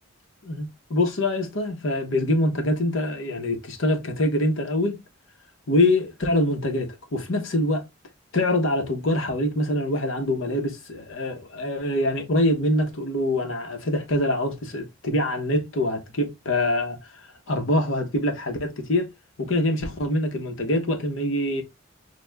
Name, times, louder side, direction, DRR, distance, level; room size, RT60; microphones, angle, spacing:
voice 1, 0.4-5.0 5.7-7.8 8.3-17.0 17.5-19.1 19.4-21.6, left 1 dB, 70° left, 0.9 m, -24 dB
6.3 x 2.3 x 2.2 m
head